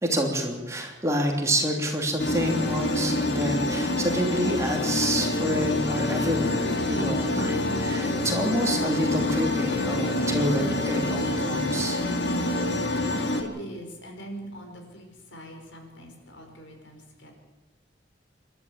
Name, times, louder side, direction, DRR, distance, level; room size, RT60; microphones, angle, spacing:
voice 1, 0.0-12.0, equal, 15° right, 1 dB, 3.1 m, -28 dB
sound 1, 2.2-13.4, left 1 dB, 60° left, 2.5 m, -26 dB
voice 2, 13.1-17.3, equal, 85° left, 3 dB, 5.3 m, -42 dB
27.0 x 12.0 x 8.8 m, 1.1 s
head